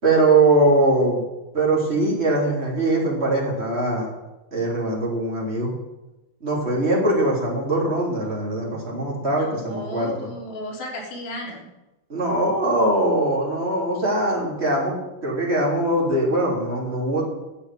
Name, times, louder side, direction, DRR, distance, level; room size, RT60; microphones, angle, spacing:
voice 1, 0.0-1.2 1.5-4.1 4.5-5.7 6.4-10.3 12.1-14.9 15.2-17.3, right 2 dB, 15° right, -3 dB, 3.5 m, -21 dB
voice 2, 9.4-11.7, left 1 dB, 75° left, -2 dB, 4.8 m, -34 dB
10.5 x 8.3 x 9.2 m, 1.0 s
omnidirectional pair, 4.2 m